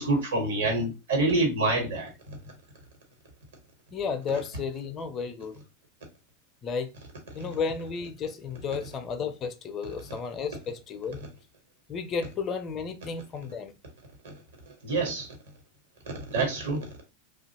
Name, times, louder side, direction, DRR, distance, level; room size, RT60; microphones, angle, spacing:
voice 1, 0.0-2.4 14.7-15.3 16.3-16.9, right 2 dB, 70° right, 1.2 m, -27 dB
voice 2, 3.9-5.6 6.6-6.9 7.3-11.3 11.9-13.7, left 5 dB, 30° left, 0.5 m, -33 dB
2.7 x 2.3 x 2.9 m
figure-of-eight pair, 90°, 0 cm